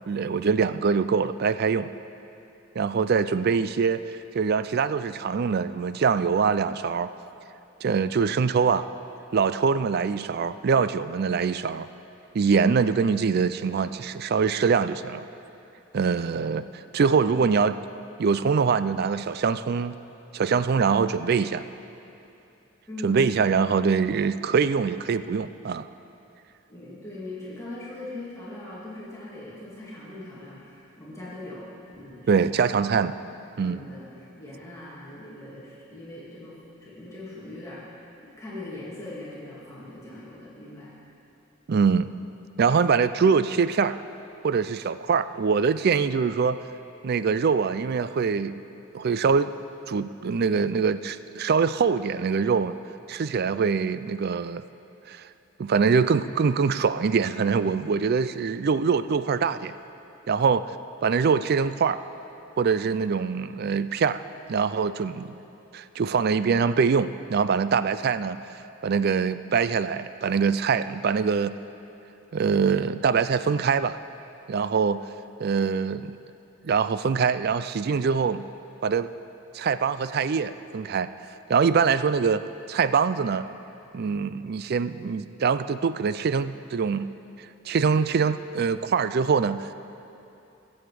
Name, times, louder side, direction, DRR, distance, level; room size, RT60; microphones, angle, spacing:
voice 1, 0.1-1.9 2.8-4.0 4.3-7.1 7.8-8.9 9.3-11.9 12.3-15.3 15.9-17.8 18.2-20.0 20.3-21.6 23.0-25.9 32.3-33.1 33.6-33.8 41.7-42.1 42.6-44.0 44.4-46.6 47.0-48.6 48.9-49.5 49.9-52.8 53.1-54.6 55.1-55.3 55.6-59.7 60.3-60.7 61.0-62.0 62.6-64.2 64.5-65.4 65.7-68.4 68.8-71.6 72.3-74.0 74.5-75.0 75.4-76.2 76.6-78.5 78.8-79.1 79.5-81.1 81.5-83.5 83.9-87.1 87.7-89.7, right 5 dB, 50° right, 13 dB, 0.4 m, -23 dB
voice 2, 22.9-23.2 26.7-33.1 33.6-38.0 38.4-40.9, left 2 dB, 15° left, -8 dB, 2.4 m, -41 dB
21.5 x 8.0 x 4.8 m, 2.9 s
head